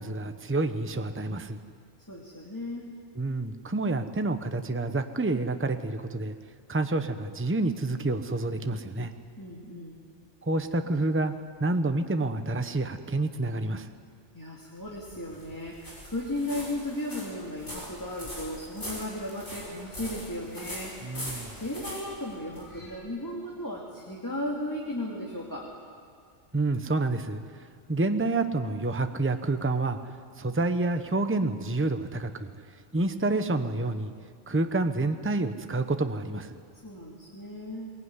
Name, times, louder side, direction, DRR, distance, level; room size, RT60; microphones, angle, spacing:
voice 1, 0.0-1.6 3.2-6.4 6.7-9.1 10.4-11.3 11.6-13.9 21.0-21.6 26.5-27.4 27.9-30.0 30.4-32.5 32.9-34.1 34.5-36.6, right 2 dB, 10° right, 8 dB, 0.9 m, -28 dB
voice 2, 2.1-2.9 9.4-10.0 14.3-20.9 21.6-25.7 36.8-37.9, left 1 dB, 15° left, -3 dB, 2.7 m, -35 dB
sound 1, 14.8-22.9, equal, 70° left, 7.0 m, -42 dB
21.5 x 21.5 x 9.8 m, 2.1 s
omnidirectional pair, 1.3 m